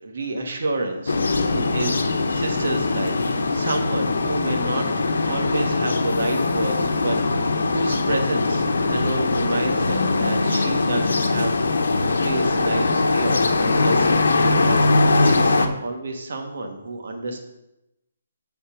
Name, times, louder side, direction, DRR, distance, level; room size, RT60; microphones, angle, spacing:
voice 1, 0.0-1.2 1.5-14.3 14.6-17.4, right 2 dB, 65° right, 3 dB, 1.4 m, -29 dB
sound 1, 1.1-15.7, left 3 dB, 80° left, 0.9 m, -21 dB
sound 2, 2.9-14.3, left 3 dB, 40° left, 1.3 m, -43 dB
8.3 x 4.2 x 5.9 m, 0.90 s
hypercardioid pair, 165°, 0 cm